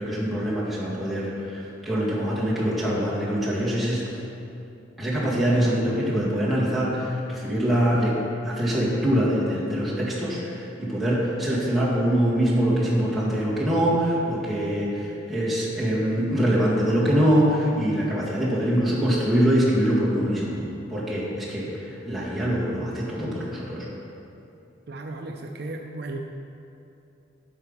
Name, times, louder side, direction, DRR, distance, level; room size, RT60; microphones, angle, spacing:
voice 1, 0.0-4.0 5.0-8.1 8.4-21.7 22.0-23.9, equal, ahead, -9 dB, 2.0 m, -24 dB
voice 2, 24.9-26.2, right 2 dB, 60° right, 3 dB, 0.6 m, -35 dB
8.9 x 5.6 x 5.6 m, 2.7 s
head